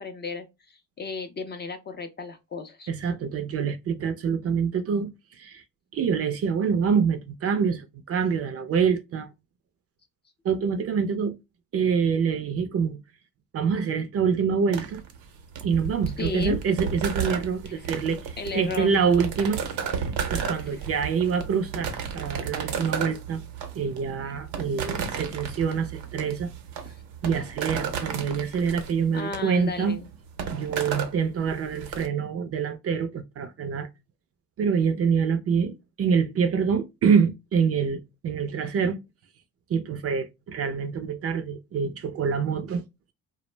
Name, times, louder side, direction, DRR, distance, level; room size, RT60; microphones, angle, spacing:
voice 1, 0.0-2.9 16.2-16.6 17.8-17.9 18.4-19.0 20.6-20.9 24.2-24.3 26.9-27.0 28.4-28.6 29.1-30.1, left 4 dB, 30° left, 0.3 m, -35 dB
voice 2, 2.9-5.6 5.9-9.3 10.4-11.4 11.7-13.0 13.5-15.0 15.6-23.4 23.8-26.5 27.2-30.0 30.5-33.9 34.6-39.0 39.7-42.8, right 6 dB, 40° right, 0.4 m, -26 dB
sound 1, 14.7-32.1, right 7 dB, 80° right, 0.7 m, -33 dB
2.3 x 2.1 x 3.1 m
cardioid pair, 95°, 40 cm